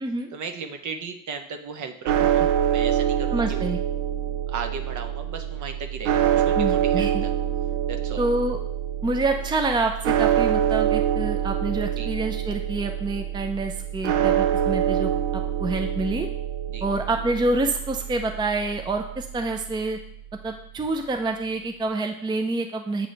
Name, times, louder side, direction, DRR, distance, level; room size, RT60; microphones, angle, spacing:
voice 1, 0.3-3.7 4.5-7.3 7.9-8.2 12.0-12.1 16.7-16.9, right 5 dB, 45° right, 6 dB, 0.9 m, -36 dB
sound 1, 2.1-20.3, right 10 dB, 75° right, 0.6 m, -25 dB
voice 2, 3.3-3.8 6.6-7.2 8.2-8.6 9.0-15.1 15.6-16.3 16.8-20.0 20.4-23.1, right 2 dB, 10° right, 5 dB, 0.5 m, -27 dB
8.3 x 3.7 x 3.3 m, 0.71 s
hypercardioid pair, 65°, 40 cm